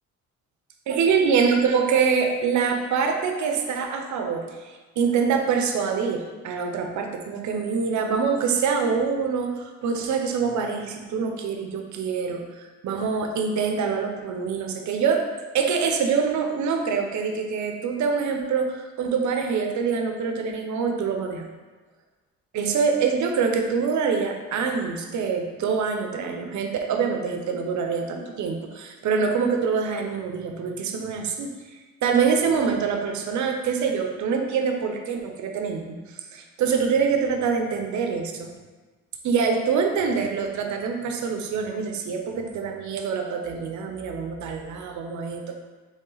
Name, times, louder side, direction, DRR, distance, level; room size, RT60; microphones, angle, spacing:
voice 1, 0.9-15.2 15.5-21.5 22.5-31.5 32.0-38.5 39.2-45.6, right 5 dB, 70° right, 4 dB, 0.7 m, -25 dB
4.2 x 3.2 x 3.9 m, 1.3 s
cardioid pair, 90°, 30 cm